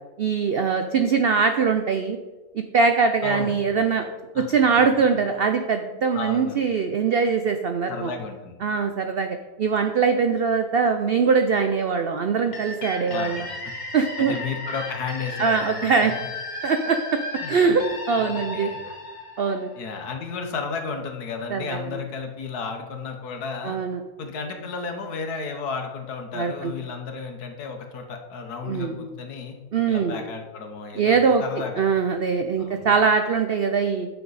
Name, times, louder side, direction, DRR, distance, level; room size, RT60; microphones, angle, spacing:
voice 1, 0.2-2.2 2.5-4.1 4.4-8.1 8.6-13.5 13.9-14.4 15.4-16.1 16.6-17.2 17.5-18.7 19.4-19.7 21.5-21.8 23.6-24.0 26.3-26.7 28.7-29.1 29.7-30.2 31.0-31.4 31.8-34.1, right 5 dB, 85° right, 7 dB, 0.5 m, -22 dB
voice 2, 3.2-3.6 4.3-4.5 6.1-6.6 7.9-8.6 13.1-13.7 14.2-16.1 17.4-17.6 18.2-18.8 19.7-23.8 24.2-29.5 29.9-31.8 32.6-32.9, left 5 dB, 75° left, 4 dB, 1.6 m, -33 dB
sound 1, 12.5-20.1, left 2 dB, 30° left, 1.1 m, -35 dB
9.3 x 6.0 x 4.1 m, 1.2 s
omnidirectional pair, 1.7 m